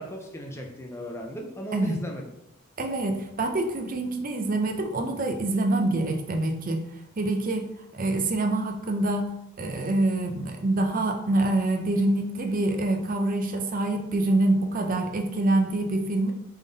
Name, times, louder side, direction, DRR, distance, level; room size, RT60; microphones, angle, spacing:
voice 1, 0.0-2.2, equal, 10° left, 2 dB, 0.5 m, -37 dB
voice 2, 2.8-6.8 7.2-7.7 7.9-9.3 9.6-16.3, right 2 dB, 40° right, 4 dB, 0.5 m, -25 dB
3.6 x 3.6 x 4.0 m, 0.83 s
head